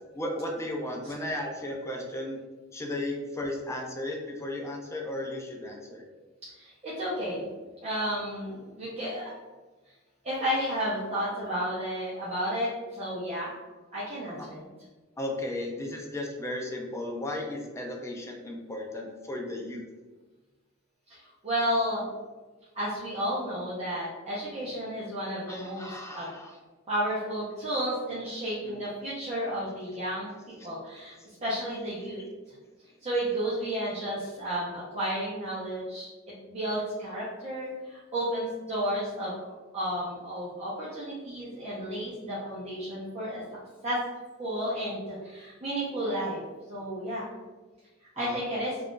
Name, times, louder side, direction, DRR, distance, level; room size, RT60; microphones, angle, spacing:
voice 1, 0.1-2.4 2.7-6.0 14.4-14.5 15.2-19.8 25.5-26.6 28.6-28.8 48.2-48.4, left 1 dB, 15° left, 0 dB, 0.4 m, -35 dB
voice 2, 6.5-7.5 7.8-9.3 10.2-13.5 13.9-14.7 21.1-22.1 22.7-26.3 26.9-32.2 33.0-43.4 43.8-44.0 44.4-46.4 46.7-47.2 48.1-48.7, equal, 30° right, -9 dB, 0.7 m, -32 dB
2.4 x 2.3 x 3.6 m, 1.2 s
head